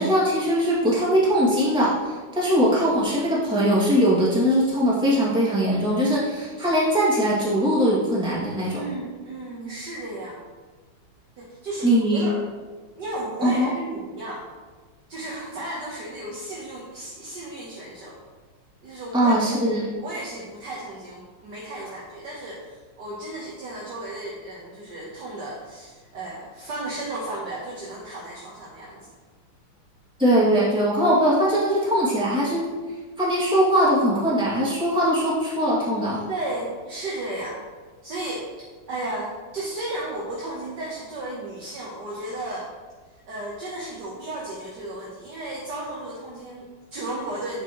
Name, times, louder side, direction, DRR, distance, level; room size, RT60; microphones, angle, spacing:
voice 1, 0.0-8.8 11.8-12.2 13.4-13.7 19.1-19.8 30.2-32.7 33.2-36.3, equal, ahead, -7 dB, 2.2 m, -21 dB
voice 2, 8.7-10.4 11.4-12.4 13.0-14.5 15.1-18.2 18.8-19.5 19.9-29.1 36.3-37.6 38.0-38.5 38.9-42.7 43.3-47.6, right 1 dB, 60° right, -3 dB, 1.7 m, -34 dB
9.4 x 7.0 x 3.1 m, 1.4 s
omnidirectional pair, 2.2 m